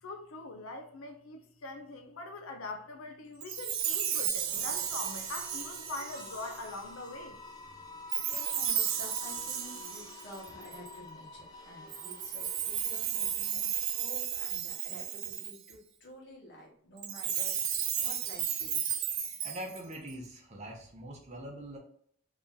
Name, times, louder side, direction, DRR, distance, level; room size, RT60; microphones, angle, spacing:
voice 1, 0.0-7.5, left 2 dB, 75° left, 0.5 m, -43 dB
Chime, 3.4-6.8 8.1-11.0 11.9-15.7 17.0-20.1, right 9 dB, 75° right, 0.6 m, -34 dB
sound 1, 4.4-14.3, left 3 dB, 20° left, 0.3 m, -49 dB
voice 2, 8.3-19.1, equal, 55° left, 1.3 m, -50 dB
voice 3, 19.4-21.8, right 1 dB, 30° right, 0.8 m, -43 dB
2.9 x 2.7 x 3.6 m
head